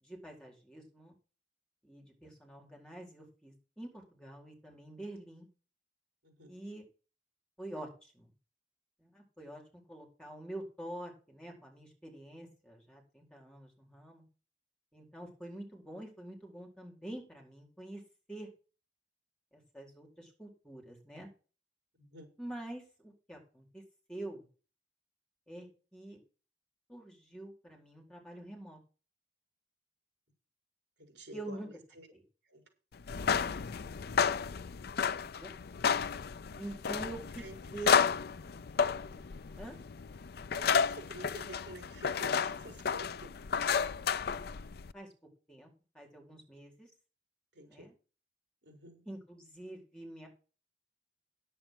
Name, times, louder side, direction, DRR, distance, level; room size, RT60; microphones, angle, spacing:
voice 1, 0.0-1.1 1.8-5.5 6.5-6.8 7.6-8.3 9.0-14.2 14.9-18.0 18.3-18.5 19.5-21.3 22.4-23.8 24.1-24.5 25.5-26.2 26.9-28.8 31.3-31.7 32.1-32.2 35.0-35.5 36.6-37.2 37.7-38.1 39.6-39.8 44.9-45.1 45.5-46.9 47.6-47.9 49.1-50.3, right 1 dB, 5° left, 0 dB, 4.5 m, -46 dB
voice 2, 6.2-6.5 21.9-22.3 31.0-32.1 32.4-32.6 33.1-33.3 37.0-37.5 39.1-39.3 40.5-43.4 47.5-47.9 48.6-49.0, right 1 dB, 70° right, 4 dB, 5.0 m, -50 dB
sound 1, 33.0-44.9, left 6 dB, 60° left, 0.5 m, -32 dB
10.5 x 8.3 x 6.1 m, 0.36 s
head